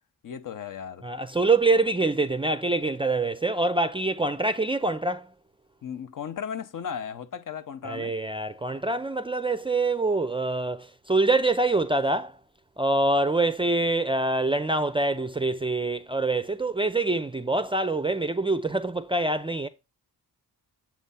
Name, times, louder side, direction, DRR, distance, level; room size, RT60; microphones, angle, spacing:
voice 1, 0.2-1.1 5.8-8.1, left 7 dB, 55° left, 0.8 m, -36 dB
voice 2, 1.0-5.3 7.8-12.4 12.8-19.7, right 2 dB, 15° right, 0.4 m, -25 dB
7.3 x 3.2 x 5.5 m
cardioid pair, 90°, 37 cm